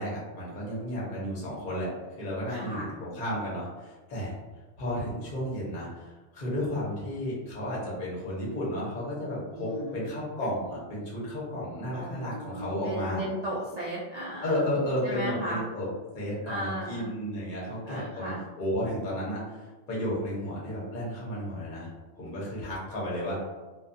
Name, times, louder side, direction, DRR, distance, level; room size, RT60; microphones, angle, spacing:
voice 1, 0.0-1.9 2.2-4.3 4.8-13.3 14.4-15.9 16.1-19.4 19.9-21.9 22.2-23.4, equal, 45° left, -6 dB, 0.9 m, -33 dB
voice 2, 2.5-2.9 9.5-10.0 11.9-14.4 15.0-15.6 16.4-17.1 17.9-18.4, right 1 dB, 75° right, -7 dB, 0.3 m, -35 dB
2.3 x 2.3 x 2.6 m, 1.2 s
omnidirectional pair, 1.3 m